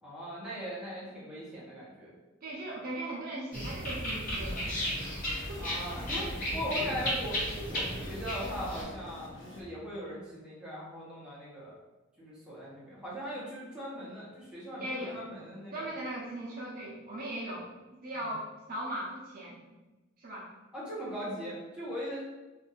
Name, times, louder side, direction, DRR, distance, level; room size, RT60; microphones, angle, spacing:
voice 1, 0.0-2.1 5.6-11.7 12.2-15.9 18.1-18.3 20.7-22.2, equal, 5° right, -8 dB, 1.0 m, -39 dB
voice 2, 2.4-4.7 5.0-5.7 6.1-6.3 14.8-15.2 15.7-17.7 18.0-19.6 20.2-20.5, right 1 dB, 50° right, -5 dB, 0.6 m, -39 dB
sound 1, 3.5-8.8, equal, 45° left, 1.1 m, -34 dB
sound 2, 4.3-9.6, left 1 dB, 75° left, 0.8 m, -48 dB
2.6 x 2.5 x 4.0 m, 1.1 s
head